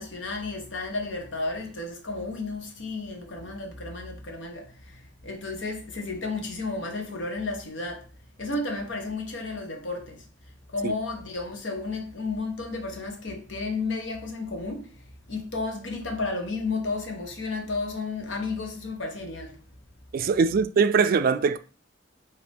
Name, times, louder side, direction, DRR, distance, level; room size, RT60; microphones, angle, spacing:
voice 1, 0.0-4.6 5.2-8.0 8.4-10.2 10.7-14.9 15.3-19.5, left 3 dB, 85° left, 1.0 m, -32 dB
voice 2, 20.1-21.6, right 5 dB, 50° right, 0.3 m, -22 dB
5.2 x 2.8 x 3.4 m
head